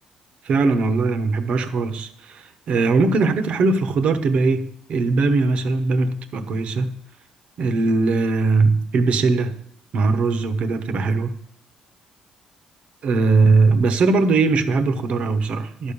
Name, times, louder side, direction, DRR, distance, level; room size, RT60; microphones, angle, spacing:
voice 1, 0.4-7.0 7.6-9.5 9.9-11.4 13.0-15.9, right 3 dB, 65° right, 1.0 m, -20 dB
11.0 x 5.4 x 6.9 m
cardioid pair, 95°, 2 cm